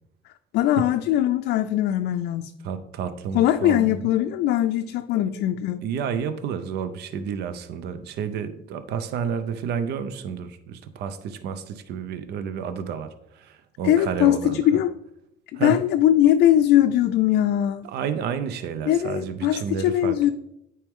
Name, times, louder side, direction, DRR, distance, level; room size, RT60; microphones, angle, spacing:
voice 1, 0.5-2.5 3.3-5.8 13.8-14.9 15.5-17.9 18.9-20.3, left 12 dB, 75° left, 6 dB, 0.4 m, -21 dB
voice 2, 2.6-4.0 5.2-5.4 5.8-14.8 15.5-15.8 17.8-20.3, right 7 dB, 75° right, 11 dB, 0.6 m, -31 dB
9.1 x 4.6 x 3.6 m, 0.80 s
cardioid pair, 110°, 17 cm